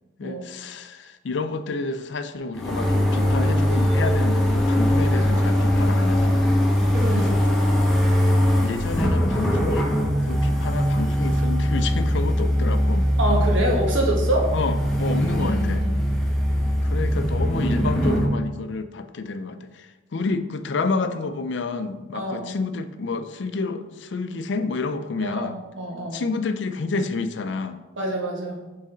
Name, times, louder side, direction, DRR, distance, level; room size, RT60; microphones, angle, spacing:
voice 1, 0.2-6.5 7.1-7.8 8.2-8.4 8.6-9.9 10.2-13.1 14.5-15.9 16.9-25.6 26.1-27.8, left 3 dB, 65° left, 10 dB, 0.4 m, -29 dB
sound 1, 2.5-18.3, equal, ahead, 0.7 m, -21 dB
voice 2, 6.9-7.5 13.2-14.5 15.4-15.9 22.1-22.5 25.2-26.2 28.0-28.6, right 1 dB, 80° right, -1 dB, 1.3 m, -26 dB
6.4 x 4.1 x 3.8 m, 1.1 s
head